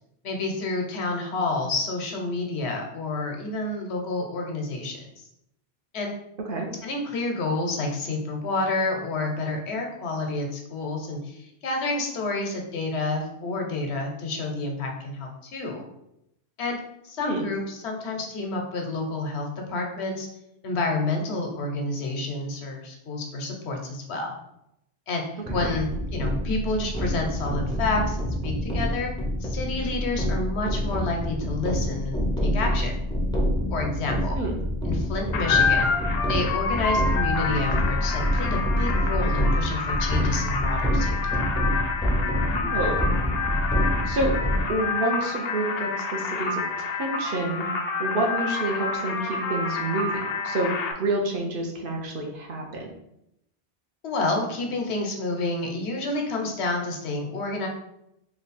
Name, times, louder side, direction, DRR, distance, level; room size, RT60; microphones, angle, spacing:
voice 1, 0.2-5.2 5.9-6.1 6.8-15.8 16.6-16.8 17.0-20.3 20.6-24.3 25.1-29.1 29.4-33.0 33.7-34.4 34.8-35.9 36.3-41.5 54.0-57.7, left 2 dB, 90° left, 2 dB, 1.0 m, -29 dB
sound 1, 25.4-44.6, equal, 5° left, 0.4 m, -27 dB
sound 2, 35.3-50.9, left 4 dB, 70° left, 0.7 m, -28 dB
voice 2, 42.5-42.9 44.0-44.3 44.7-47.7 48.0-50.7 51.0-52.9, right 2 dB, 60° right, 1 dB, 0.9 m, -28 dB
3.1 x 2.3 x 4.0 m, 0.81 s
omnidirectional pair, 1.1 m